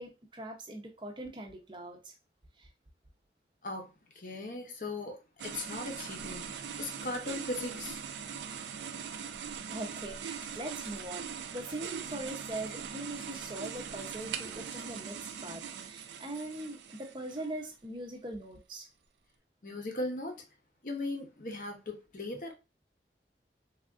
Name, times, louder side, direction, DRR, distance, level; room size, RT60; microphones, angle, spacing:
voice 1, 0.0-2.1 2.6-2.7 9.7-18.9, right 1 dB, 25° right, 0.5 m, -41 dB
voice 2, 4.1-8.0 19.6-20.4 20.8-22.5, left 2 dB, 45° left, 0.7 m, -38 dB
sound 1, 5.4-17.7, right 7 dB, 80° right, 0.3 m, -41 dB
sound 2, 10.4-11.0 11.4-14.9, left 1 dB, 10° left, 0.8 m, -57 dB
3.4 x 2.4 x 2.4 m
head